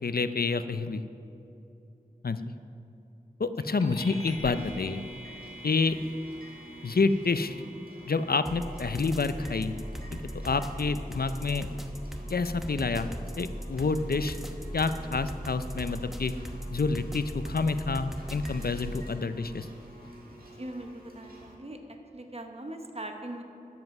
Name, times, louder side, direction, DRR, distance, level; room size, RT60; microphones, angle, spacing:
voice 1, 0.0-1.0 2.2-2.4 3.4-5.0 5.6-6.0 6.8-7.6 8.1-9.7 10.1-11.7 12.3-13.1 13.4-14.4 14.7-16.3 16.7-19.7, left 4 dB, 85° left, 11 dB, 0.5 m, -28 dB
sound 1, 3.8-13.6, equal, 25° left, 2.2 m, -49 dB
sound 2, 4.5-21.6, right 1 dB, 75° right, 2.1 m, -50 dB
sound 3, 8.5-19.1, equal, ahead, 0.9 m, -39 dB
voice 2, 20.6-21.8 22.1-23.4, right 1 dB, 40° right, 4 dB, 1.1 m, -40 dB
13.5 x 7.5 x 5.9 m, 2.8 s
wide cardioid pair, 45°, 15 cm